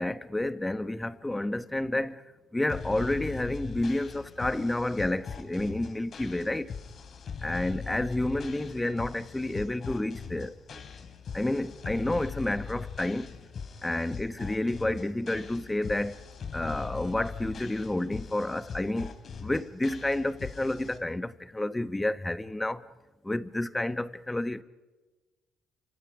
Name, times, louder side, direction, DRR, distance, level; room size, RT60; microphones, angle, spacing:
voice 1, 0.0-6.7 7.4-10.5 11.3-13.3 13.8-16.2 16.5-19.2 19.4-22.9 23.2-24.6, left 1 dB, 15° left, 1.5 m, -30 dB
sound 1, 2.7-21.0, left 6 dB, 55° left, 3.4 m, -41 dB
30.0 x 26.5 x 5.2 m
supercardioid pair, 60°, 0 cm